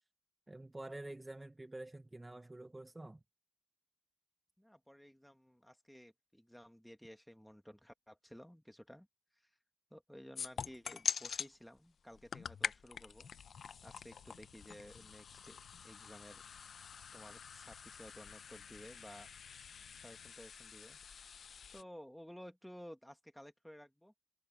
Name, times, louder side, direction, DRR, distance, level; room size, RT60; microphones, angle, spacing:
voice 1, 0.5-3.2, right 2 dB, 15° right, 1.1 m, -48 dB
voice 2, 4.6-9.1 9.3-9.5 9.9-13.3 13.8-15.6 15.8-16.4 17.1-19.3 20.0-21.0 21.7-24.1, equal, ahead, 2.4 m, -55 dB
sound 1, 10.3-11.5 12.1-21.8, left 6 dB, 50° left, 0.8 m, -45 dB
sound 2, 13.3-20.3, left 14 dB, 90° left, 5.2 m, -66 dB
cardioid pair, 90°, 0 cm